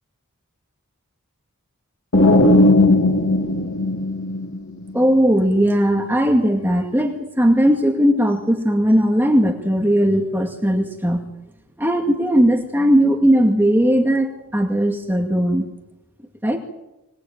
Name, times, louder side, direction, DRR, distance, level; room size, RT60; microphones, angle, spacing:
sound 1, 2.1-4.9, left 2 dB, 65° left, 2.4 m, -16 dB
voice 1, 4.9-11.3 11.8-15.7 16.4-16.6, equal, 10° right, 2 dB, 2.2 m, -18 dB
26.0 x 20.0 x 9.1 m, 0.95 s
head